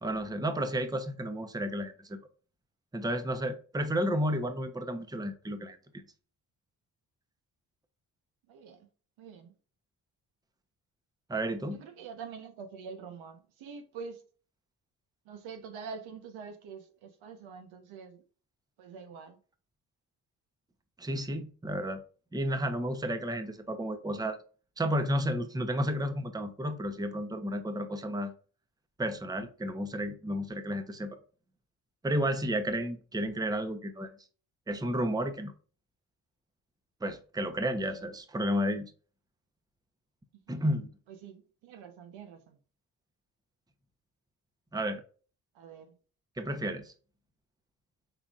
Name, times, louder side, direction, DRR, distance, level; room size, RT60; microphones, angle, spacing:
voice 1, 0.0-2.2 2.9-5.8 11.3-11.8 21.0-22.0 22.3-24.4 24.8-28.3 29.0-31.2 32.0-34.1 34.7-35.5 37.0-38.9 40.5-40.9 44.7-45.0 46.4-46.9, equal, 10° right, 0.7 m, -32 dB
voice 2, 8.5-8.9 9.2-9.5 11.7-14.2 15.2-18.2 18.8-19.4 37.9-38.1 40.5-40.6 41.1-42.6 45.5-46.0, right 5 dB, 80° right, 1.0 m, -45 dB
5.7 x 3.5 x 2.4 m
supercardioid pair, 60°, 46 cm